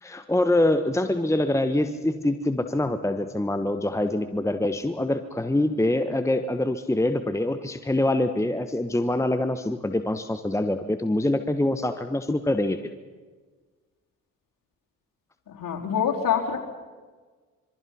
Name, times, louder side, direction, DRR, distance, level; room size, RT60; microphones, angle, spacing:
voice 1, 0.0-12.8, left 1 dB, 5° left, 9 dB, 1.3 m, -25 dB
voice 2, 15.5-16.6, left 8 dB, 50° left, 1 dB, 4.4 m, -25 dB
26.5 x 23.5 x 5.8 m, 1.4 s
figure-of-eight pair, 45°, 43 cm